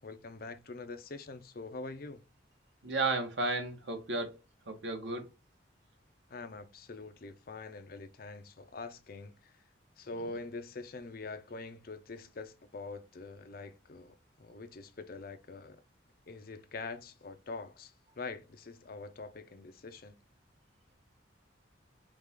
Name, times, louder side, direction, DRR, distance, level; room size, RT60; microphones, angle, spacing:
voice 1, 0.0-2.2 6.3-9.5 10.0-15.8 16.3-20.1, left 3 dB, 50° left, 0.6 m, -44 dB
voice 2, 2.8-4.4 4.7-5.3, right 3 dB, 65° right, 1.1 m, -33 dB
4.8 x 2.4 x 3.6 m
head